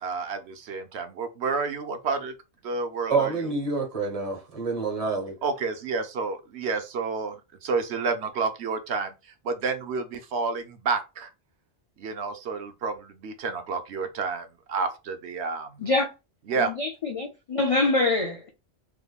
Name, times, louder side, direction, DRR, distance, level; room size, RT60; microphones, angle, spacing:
voice 1, 0.0-2.3 2.6-3.3 5.4-9.1 9.4-11.3 12.0-15.8 16.5-16.7, right 4 dB, 70° right, 0.9 m, -30 dB
voice 2, 3.1-5.4, right 4 dB, 35° right, 1.1 m, -27 dB
voice 3, 16.5-18.5, left 2 dB, 60° left, 0.3 m, -25 dB
3.5 x 2.9 x 2.3 m
omnidirectional pair, 1.2 m